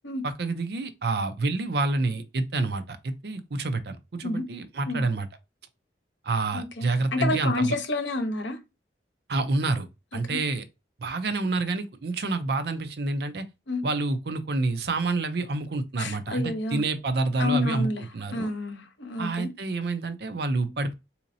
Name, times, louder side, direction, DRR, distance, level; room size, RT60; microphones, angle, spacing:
voice 1, 0.2-5.3 6.2-7.7 9.3-9.9 10.1-10.6 11.0-13.5 13.8-18.5 19.2-20.9, right 3 dB, 60° right, 0.5 m, -28 dB
voice 2, 6.5-8.6 10.3-10.4 13.7-13.8 16.0-16.8 17.4-18.0 18.3-19.5, left 2 dB, 85° left, 0.8 m, -29 dB
3.8 x 2.9 x 2.6 m
head